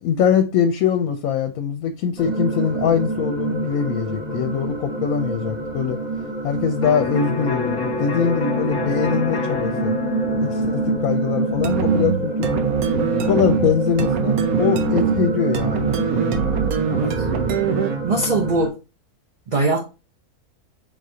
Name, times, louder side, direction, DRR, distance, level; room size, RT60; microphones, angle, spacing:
voice 1, 0.0-6.0 6.4-9.9 10.4-12.5 13.2-15.9, left 7 dB, 75° left, 1.0 m, -22 dB
sound 1, 2.2-18.7, right 2 dB, 5° right, 1.2 m, -26 dB
Electric guitar, 6.8-14.5, left 4 dB, 35° left, 1.1 m, -30 dB
sound 2, 11.6-18.1, right 7 dB, 75° right, 1.1 m, -23 dB
voice 2, 16.9-17.3 18.0-18.8 19.5-19.9, right 2 dB, 45° right, 0.6 m, -22 dB
4.8 x 3.8 x 2.7 m
omnidirectional pair, 1.5 m